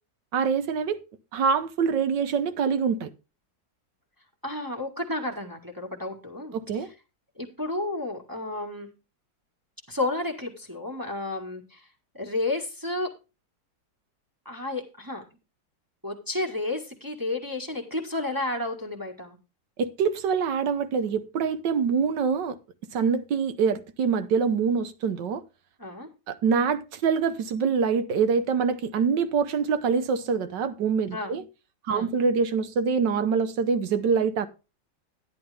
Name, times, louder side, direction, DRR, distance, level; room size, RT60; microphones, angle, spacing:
voice 1, 0.3-1.0 1.3-3.1 6.5-6.9 19.8-22.6 22.9-25.4 26.3-31.4 31.9-34.5, right 6 dB, 70° right, 1.5 m, -25 dB
voice 2, 4.4-6.9 7.4-8.9 9.9-11.9 12.1-13.1 14.4-15.2 16.0-19.4 25.8-26.1 31.1-31.3 31.9-32.1, left 2 dB, 10° right, 1.6 m, -32 dB
10.5 x 10.5 x 3.4 m
omnidirectional pair, 2.0 m